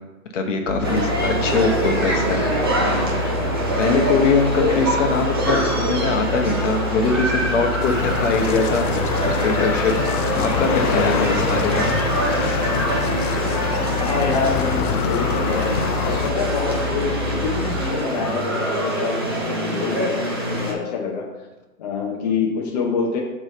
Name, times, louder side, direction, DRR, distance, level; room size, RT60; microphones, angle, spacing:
voice 1, 0.3-2.4 3.2-3.3 3.8-8.9 9.4-9.9 10.4-12.8, left 4 dB, 55° left, 3 dB, 1.1 m, -22 dB
sound 1, 0.7-17.9, left 3 dB, 65° right, 0.7 m, -29 dB
sound 2, 0.8-20.7, right 1 dB, 20° right, 0.4 m, -24 dB
sound 3, 7.8-16.3, left 8 dB, 75° left, 0.6 m, -26 dB
voice 2, 13.9-21.3 21.8-23.2, left 5 dB, 30° left, -2 dB, 0.7 m, -26 dB
6.1 x 3.2 x 5.4 m, 1.1 s
hypercardioid pair, 155°, 44 cm